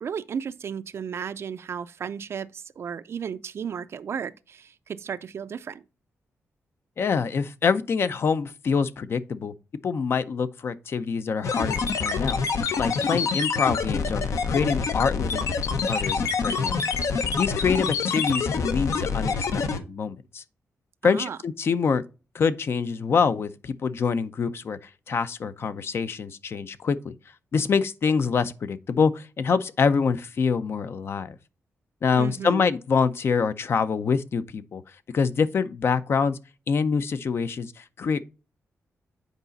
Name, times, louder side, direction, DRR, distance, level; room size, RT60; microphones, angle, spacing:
voice 1, 0.0-5.8 21.0-21.4 32.1-32.7, right 7 dB, 55° right, 0.5 m, -34 dB
voice 2, 7.0-9.5 9.8-12.4 12.8-15.4 15.9-16.8 17.4-20.4 21.0-22.0 22.3-27.1 27.5-31.4 32.0-34.8 35.1-36.4 36.7-38.2, left 5 dB, 50° left, 0.5 m, -25 dB
sound 1, 11.4-19.8, left 5 dB, 70° left, 0.9 m, -26 dB
8.1 x 4.9 x 4.0 m
wide cardioid pair, 135°, 5 cm